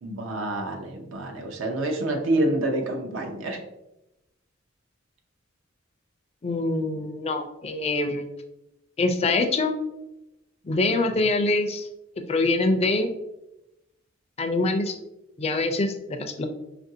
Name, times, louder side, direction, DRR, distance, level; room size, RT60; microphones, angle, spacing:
voice 1, 0.0-3.6, right 1 dB, 70° right, 2 dB, 0.6 m, -27 dB
voice 2, 6.4-8.3 9.0-9.7 10.6-11.9 12.3-13.1 14.4-15.0 15.4-16.5, left 2 dB, 30° left, 6 dB, 0.4 m, -24 dB
5.4 x 2.5 x 2.7 m, 0.92 s
head